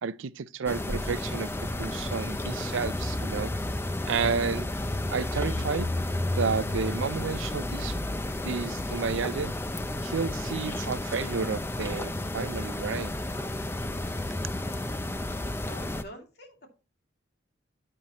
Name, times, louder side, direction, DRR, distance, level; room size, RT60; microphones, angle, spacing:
voice 1, 0.0-1.5 1.8-3.5 4.1-4.7 5.1-5.9 6.4-8.0 8.4-9.5 10.0-13.1, right 5 dB, 80° right, 0.5 m, -31 dB
sound 1, 0.7-16.0, left 1 dB, 10° left, 0.4 m, -32 dB
voice 2, 15.6-16.7, equal, 55° left, 2.5 m, -46 dB
9.8 x 8.9 x 3.0 m
head